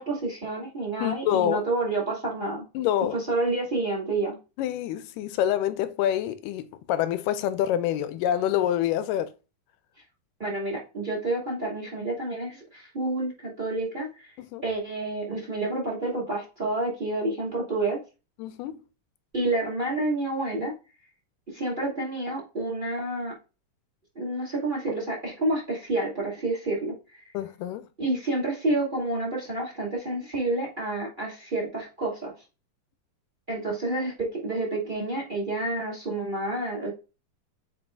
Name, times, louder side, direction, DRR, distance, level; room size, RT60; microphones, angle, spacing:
voice 1, 0.0-2.6 3.1-4.4 10.4-14.1 14.6-18.0 19.3-20.7 21.5-23.3 24.1-27.2 28.0-32.3 33.5-36.9, right 2 dB, 15° right, 2.2 m, -29 dB
voice 2, 1.0-1.7 2.7-3.2 4.6-9.3 14.4-14.6 18.4-18.8 27.3-27.9, left 11 dB, 80° left, 2.1 m, -27 dB
8.0 x 4.6 x 2.5 m
omnidirectional pair, 3.9 m